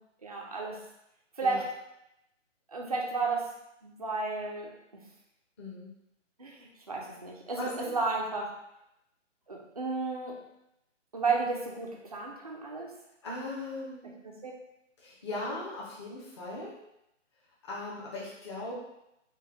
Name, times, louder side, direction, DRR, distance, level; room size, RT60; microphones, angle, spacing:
voice 1, 0.2-0.8 1.4-1.6 2.7-3.5 3.8-5.0 6.4-8.5 9.5-10.4 11.1-12.9 14.2-14.5, right 4 dB, 30° right, -1 dB, 0.4 m, -33 dB
voice 2, 5.6-5.9 7.5-8.0 13.2-14.2 15.0-16.7 17.6-18.8, left 2 dB, 20° left, -6 dB, 0.7 m, -38 dB
4.4 x 2.2 x 3.2 m, 0.84 s
hypercardioid pair, 160°, 38 cm